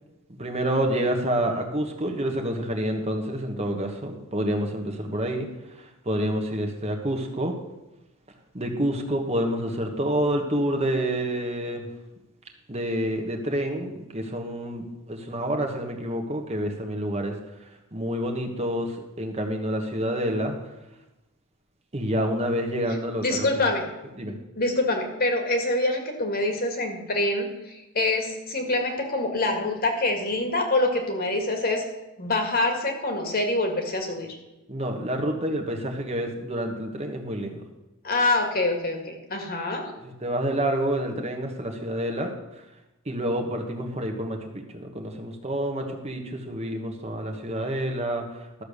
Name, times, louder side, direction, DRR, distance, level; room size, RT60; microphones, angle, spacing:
voice 1, 0.4-5.5 6.0-7.6 8.5-11.9 12.7-17.4 17.9-20.5 21.9-23.5 24.2-24.3 34.7-37.6 40.0-42.3 43.1-48.2, right 1 dB, 30° right, 3 dB, 1.4 m, -28 dB
voice 2, 23.2-23.9 24.6-31.8 32.2-34.4 38.0-39.9, left 2 dB, 45° left, 4 dB, 2.0 m, -25 dB
13.0 x 6.9 x 6.7 m, 1.0 s
head